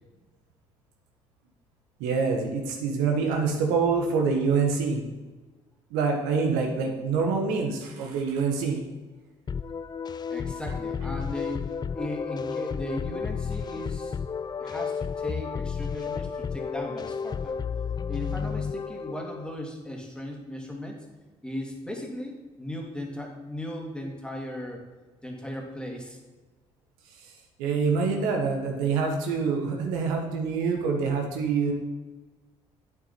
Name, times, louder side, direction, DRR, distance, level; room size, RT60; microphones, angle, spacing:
voice 1, 2.0-5.0 5.9-8.8 27.6-31.7, right 5 dB, 75° right, 1 dB, 1.4 m, -26 dB
sound 1, 9.5-19.6, left 6 dB, 30° left, 0.4 m, -32 dB
voice 2, 10.3-11.6 11.9-14.2 14.6-17.6 18.1-21.0 21.4-24.8 25.2-26.2, left 1 dB, 5° left, 0 dB, 2.4 m, -37 dB
8.8 x 6.7 x 4.3 m, 1.2 s
hypercardioid pair, 55°, 14 cm